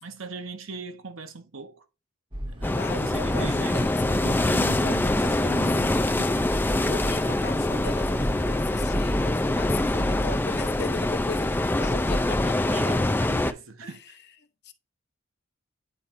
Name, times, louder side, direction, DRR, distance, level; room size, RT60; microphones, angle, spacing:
voice 1, 0.0-1.9 2.5-3.8 4.1-6.9 12.7-14.2, right 3 dB, 80° right, 0.9 m, -39 dB
sound 1, 2.3-12.5, equal, 25° right, 1.2 m, -33 dB
sound 2, 2.6-13.5, left 2 dB, 10° left, 0.3 m, -25 dB
voice 2, 2.7-4.3 4.8-5.0 5.2-5.9 6.8-12.7 13.8-14.0 14.6-14.7, left 4 dB, 55° left, 0.8 m, -38 dB
9.3 x 4.3 x 2.5 m
head